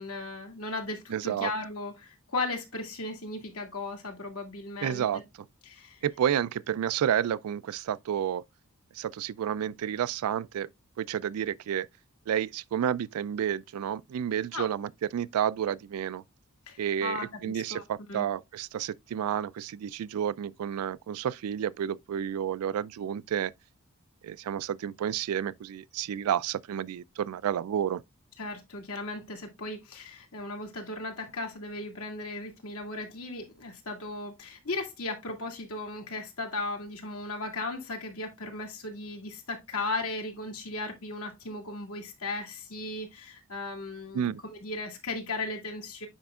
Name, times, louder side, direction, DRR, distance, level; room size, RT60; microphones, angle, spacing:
voice 1, 0.0-5.0 5.6-6.0 14.5-14.7 16.7-17.8 18.1-18.3 28.4-46.1, left 2 dB, 85° left, 2.2 m, -36 dB
voice 2, 1.1-1.5 4.8-5.2 6.0-8.4 9.0-10.7 11.0-11.9 12.3-16.2 16.8-23.5 24.2-28.0 44.1-44.4, right 9 dB, 90° right, 0.3 m, -30 dB
9.0 x 5.0 x 2.4 m
head